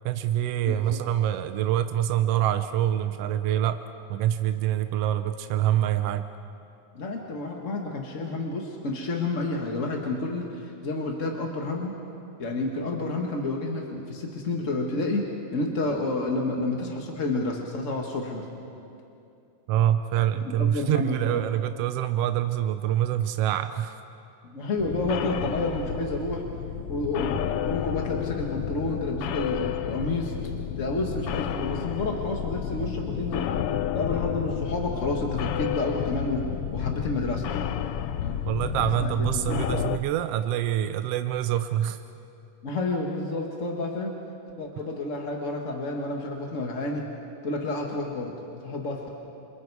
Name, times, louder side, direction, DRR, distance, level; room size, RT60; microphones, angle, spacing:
voice 1, 0.0-3.8 4.1-6.3 19.7-24.0 38.5-42.0, right 11 dB, 75° right, 9 dB, 1.4 m, -25 dB
voice 2, 0.6-1.0 6.9-12.0 12.4-15.3 15.5-18.4 20.3-21.4 24.5-26.5 26.9-30.3 30.8-33.5 33.9-36.4 36.7-37.5 38.2-38.4 39.0-39.5 42.6-44.1 44.6-47.0 47.4-48.3 48.6-49.1, left 2 dB, 40° left, 1 dB, 1.2 m, -30 dB
sound 1, 24.8-40.0, left 10 dB, 85° left, 1.2 m, -31 dB
27.5 x 27.0 x 4.7 m, 2.7 s
omnidirectional pair, 3.4 m